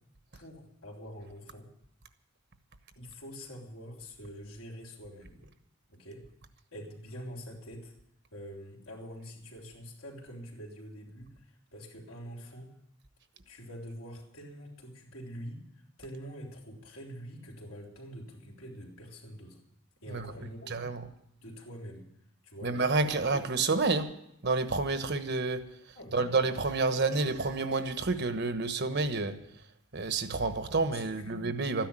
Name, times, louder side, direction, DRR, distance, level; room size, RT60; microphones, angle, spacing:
voice 1, 0.3-1.7 2.9-5.4 5.9-6.2 6.7-7.9 8.3-12.7 13.4-15.6 16.0-19.6 20.0-20.7 21.4-22.1 22.4-22.8 23.1-23.3 25.9-26.3 30.9-31.4, equal, 75° left, -1 dB, 3.5 m, -45 dB
voice 2, 20.7-21.0 22.6-24.1 24.4-25.6 26.1-29.3 29.9-31.9, right 3 dB, 55° right, 9 dB, 1.2 m, -29 dB
13.0 x 10.5 x 8.9 m, 0.77 s
head